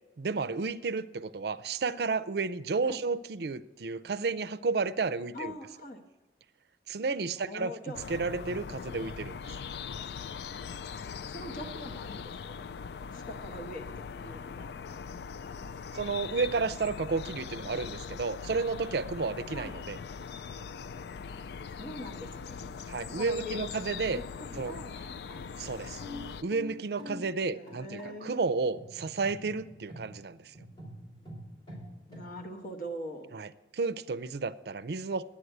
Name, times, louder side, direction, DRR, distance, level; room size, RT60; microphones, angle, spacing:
voice 1, 0.2-5.5 6.9-7.7 8.1-9.4 15.9-20.0 22.9-24.2 24.6-24.7 25.6-26.0 26.4-30.4 33.3-35.2, right 4 dB, 60° right, 0.5 m, -32 dB
voice 2, 5.3-6.0 7.3-8.0 11.1-12.6 13.1-14.7 19.5-19.8 21.3-22.7 23.0-23.6 24.1-25.0 27.5-28.4 32.1-33.3, left 1 dB, 50° left, 1.3 m, -43 dB
sound 1, 7.9-26.4, left 6 dB, 65° left, 0.3 m, -41 dB
sound 2, 24.4-32.4, left 1 dB, 25° left, 3.1 m, -47 dB
9.9 x 8.6 x 7.9 m
head